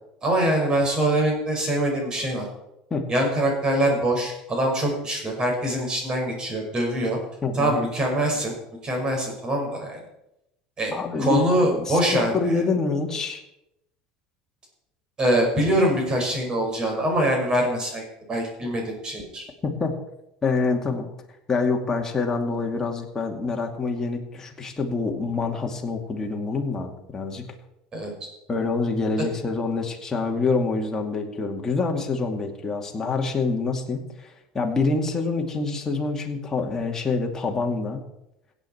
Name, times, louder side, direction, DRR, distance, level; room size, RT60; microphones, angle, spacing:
voice 1, 0.2-2.5 3.1-7.2 7.5-8.5 8.8-10.0 10.8-12.6 15.2-19.5 27.9-28.1, right 1 dB, 30° right, 1 dB, 5.4 m, -24 dB
voice 2, 7.4-7.8 10.9-13.4 19.6-19.9 20.4-21.1 21.5-27.4 28.5-38.0, left 3 dB, 20° left, 1 dB, 2.4 m, -26 dB
16.5 x 8.4 x 4.6 m, 0.86 s
supercardioid pair, 110°, 3 cm